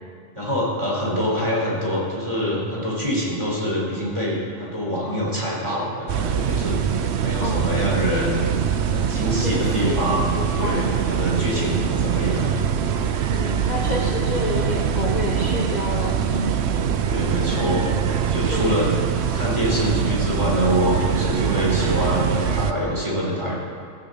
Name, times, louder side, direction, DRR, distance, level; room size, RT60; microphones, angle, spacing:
voice 1, 0.4-8.5 8.9-12.6 13.7-13.9 17.1-18.9 19.3-23.6, equal, 20° right, -6 dB, 4.1 m, -25 dB
sound 1, 6.1-22.7, right 7 dB, 65° right, 0.9 m, -23 dB
voice 2, 7.4-7.7 9.4-10.9 11.3-12.0 13.3-16.5 18.5-18.8, left 2 dB, 40° left, 0 dB, 1.0 m, -29 dB
15.5 x 6.9 x 7.7 m, 2.3 s
omnidirectional pair, 1.3 m